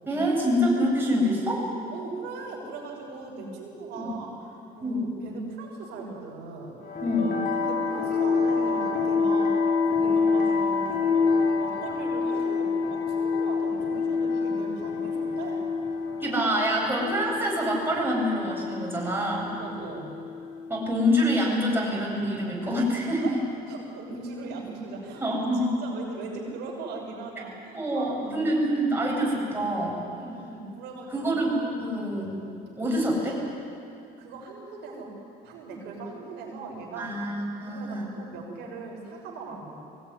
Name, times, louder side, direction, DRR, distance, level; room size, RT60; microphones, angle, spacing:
voice 1, 0.1-1.7 4.0-4.1 4.8-5.1 7.0-7.4 16.2-19.5 20.7-23.3 25.2-25.7 27.7-30.0 31.1-32.3 32.8-33.4 37.0-38.1, equal, 15° right, -3 dB, 7.9 m, -26 dB
voice 2, 1.9-6.8 7.6-11.2 11.6-15.6 19.6-20.1 23.2-23.4 23.7-25.2 25.8-28.5 28.8-29.0 30.1-31.4 34.2-35.2 35.4-37.1 37.5-39.7, right 3 dB, 85° right, -2 dB, 6.2 m, -39 dB
sound 1, 6.8-20.9, left 4 dB, 65° left, 4.7 m, -27 dB
22.5 x 18.5 x 9.8 m, 2.6 s
cardioid pair, 110°, 17 cm